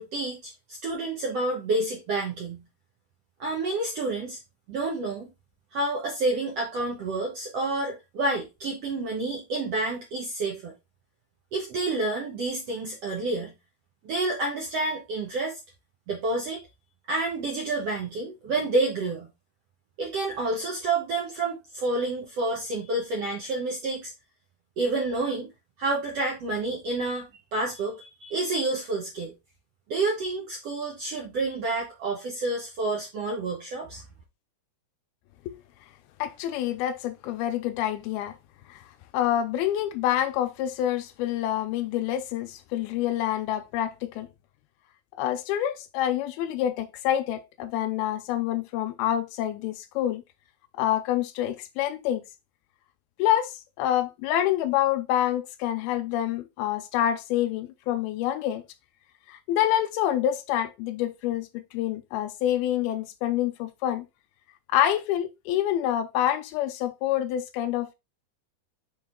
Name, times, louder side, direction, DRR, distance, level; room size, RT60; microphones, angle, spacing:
voice 1, 0.0-2.6 3.4-4.4 4.7-5.3 5.7-10.7 11.5-13.5 14.0-15.6 16.1-16.6 17.1-19.3 20.0-24.1 24.8-25.5 25.8-29.3 29.9-34.0, right 2 dB, 70° right, 1.5 m, -29 dB
voice 2, 36.2-38.4 38.7-38.8 39.1-44.3 45.2-50.2 50.8-52.2 53.2-58.6 59.3-64.1 64.7-67.9, left 11 dB, 80° left, 2.6 m, -27 dB
6.4 x 3.9 x 3.7 m
omnidirectional pair, 4.4 m